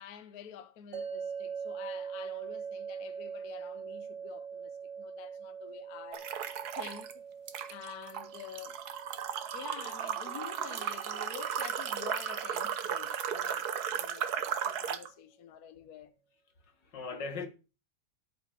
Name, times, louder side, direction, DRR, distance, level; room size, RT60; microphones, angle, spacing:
voice 1, 0.0-6.3 6.8-7.2 7.7-8.8 9.5-16.1, left 8 dB, 65° left, 1.2 m, -48 dB
sound 1, 0.9-14.0, right 6 dB, 85° right, 2.1 m, -44 dB
sound 2, 6.1-7.1 7.5-15.1, right 8 dB, 65° right, 1.4 m, -35 dB
voice 2, 16.6-17.5, left 4 dB, 80° left, 2.4 m, -40 dB
8.6 x 7.0 x 6.7 m
omnidirectional pair, 1.9 m